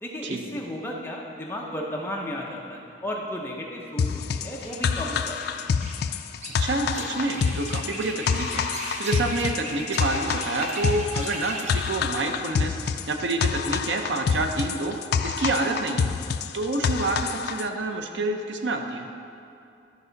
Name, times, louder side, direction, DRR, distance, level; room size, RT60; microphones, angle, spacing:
voice 1, 0.0-5.7, equal, 10° left, -2 dB, 0.8 m, -34 dB
sound 1, 4.0-17.7, left 6 dB, 55° left, 0.3 m, -27 dB
sound 2, 4.6-11.9, right 1 dB, 35° right, 0.9 m, -37 dB
voice 2, 6.6-15.0 15.2-16.1 16.5-19.1, right 2 dB, 70° right, 4 dB, 0.7 m, -28 dB
12.0 x 5.4 x 4.0 m, 2.5 s
head